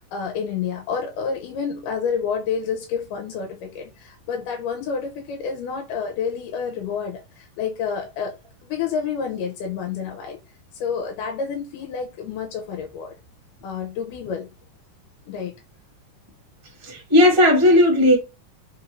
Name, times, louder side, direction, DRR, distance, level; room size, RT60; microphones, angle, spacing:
voice 1, 0.0-10.4 10.7-13.2 13.6-14.5 15.3-15.5, left 6 dB, 90° left, 2.2 m, -29 dB
voice 2, 16.8-18.1, left 1 dB, 15° right, 0.9 m, -15 dB
5.1 x 2.4 x 3.1 m
omnidirectional pair, 3.8 m